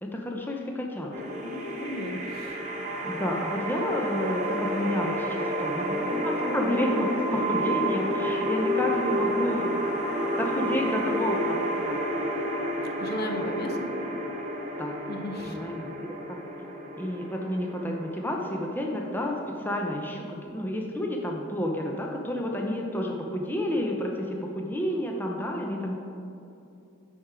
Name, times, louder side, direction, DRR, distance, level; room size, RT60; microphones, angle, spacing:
voice 1, 0.0-1.3 3.0-10.0 10.4-12.0 13.3-13.4 14.8-14.9 15.4-16.4 17.0-25.9, left 1 dB, 10° left, 0 dB, 0.5 m, -30 dB
sound 1, 1.1-20.1, equal, 35° right, 0.9 m, -30 dB
voice 2, 1.4-2.6 7.3-7.7 13.0-13.9 15.1-15.6, left 1 dB, 50° left, 4 dB, 0.7 m, -35 dB
9.3 x 4.4 x 4.9 m, 2.7 s
head